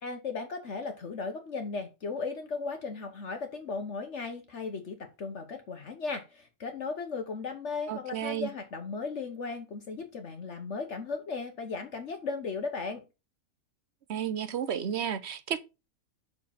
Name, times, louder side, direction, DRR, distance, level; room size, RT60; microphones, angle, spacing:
voice 1, 0.0-13.0, left 4 dB, 55° left, 1.2 m, -36 dB
voice 2, 7.9-8.5 14.1-15.6, right 9 dB, 55° right, 0.9 m, -32 dB
6.0 x 4.7 x 5.7 m
omnidirectional pair, 1.6 m